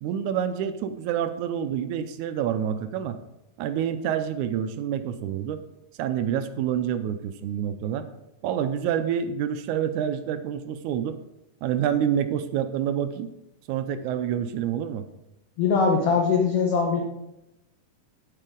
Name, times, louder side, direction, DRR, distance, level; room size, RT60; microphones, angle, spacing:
voice 1, 0.0-3.2 3.6-5.6 6.0-8.1 8.4-11.2 11.6-13.3 13.7-15.1, right 9 dB, 80° right, 10 dB, 1.9 m, -27 dB
voice 2, 15.6-17.0, left 5 dB, 60° left, 0 dB, 1.7 m, -21 dB
9.1 x 8.8 x 3.7 m, 0.89 s
omnidirectional pair, 3.8 m